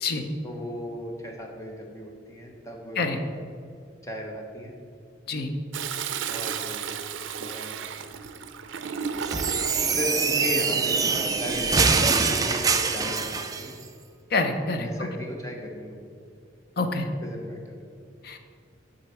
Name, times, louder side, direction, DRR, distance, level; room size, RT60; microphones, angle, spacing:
voice 1, 0.4-3.0 4.0-4.7 6.3-7.0 7.4-7.8 9.9-11.7 12.3-13.8 14.8-16.0 17.2-17.7, left 1 dB, 15° left, 1 dB, 1.0 m, -36 dB
Toilet flush, 5.7-10.0 11.4-11.9, right 7 dB, 80° right, 0.5 m, -34 dB
sound 1, 9.2-13.7, right 4 dB, 20° right, 0.4 m, -24 dB
voice 2, 14.3-15.1 16.8-17.1 18.2-18.4, left 3 dB, 55° left, 6 dB, 0.7 m, -27 dB
7.7 x 4.1 x 6.9 m, 2.3 s
head